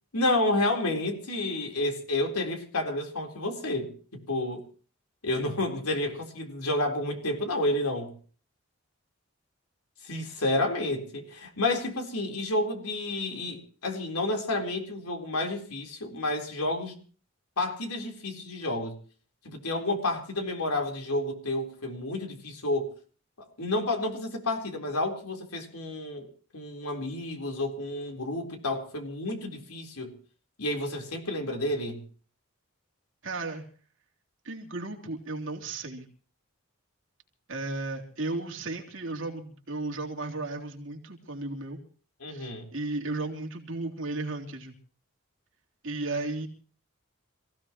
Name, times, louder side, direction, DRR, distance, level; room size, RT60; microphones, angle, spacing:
voice 1, 0.1-4.6 5.2-8.1 10.0-16.9 17.6-18.9 19.4-22.9 23.6-26.2 26.5-30.2 30.6-32.0 42.2-42.7, left 2 dB, 90° left, 4.1 m, -30 dB
voice 2, 33.2-33.6 34.4-36.0 37.5-41.8 42.3-44.7 45.8-46.5, right 2 dB, 60° right, 3.5 m, -34 dB
27.5 x 16.0 x 3.1 m
head